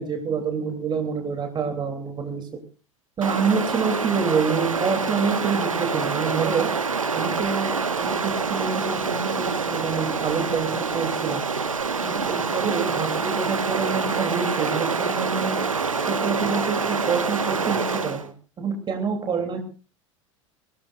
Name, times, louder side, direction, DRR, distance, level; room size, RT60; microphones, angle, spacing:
voice 1, 0.0-2.6 3.2-6.7 7.1-11.4 12.0-15.6 16.0-19.6, right 5 dB, 25° right, 4 dB, 3.3 m, -27 dB
Stream, 3.2-18.3, right 5 dB, 80° right, 1.5 m, -26 dB
24.0 x 18.0 x 2.6 m, 0.35 s
figure-of-eight pair, 80°, 17 cm